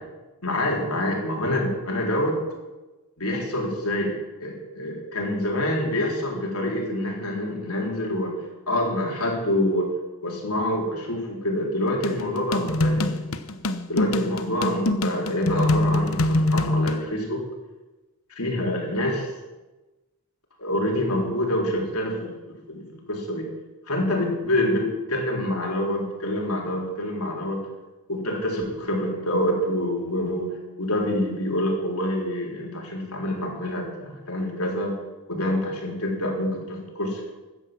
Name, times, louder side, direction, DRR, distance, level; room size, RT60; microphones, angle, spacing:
voice 1, 0.4-2.4 3.2-8.3 8.7-9.9 10.2-13.2 13.9-17.4 18.3-19.3 20.6-23.5 23.9-27.7 28.1-30.5 30.8-35.0 35.3-37.3, left 1 dB, 85° left, 0 dB, 4.0 m, -26 dB
sound 1, 12.0-17.0, left 1 dB, 70° left, 0.9 m, -24 dB
14.0 x 9.9 x 7.6 m, 1.1 s
head